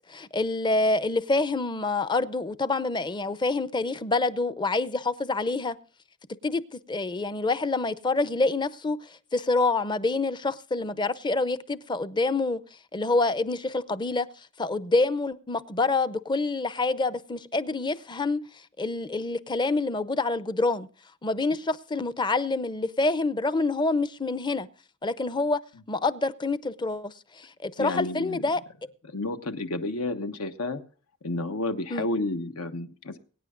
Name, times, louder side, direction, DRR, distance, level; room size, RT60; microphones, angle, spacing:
voice 1, 0.1-5.8 6.4-9.0 9.3-12.6 12.9-14.3 14.6-18.4 18.8-20.9 21.2-24.7 25.0-25.6 25.9-28.6 31.9-32.1, left 3 dB, 20° left, 0.6 m, -27 dB
voice 2, 27.8-28.5 29.1-30.8 31.2-33.2, left 2 dB, 85° left, 1.3 m, -31 dB
23.5 x 9.8 x 2.5 m
head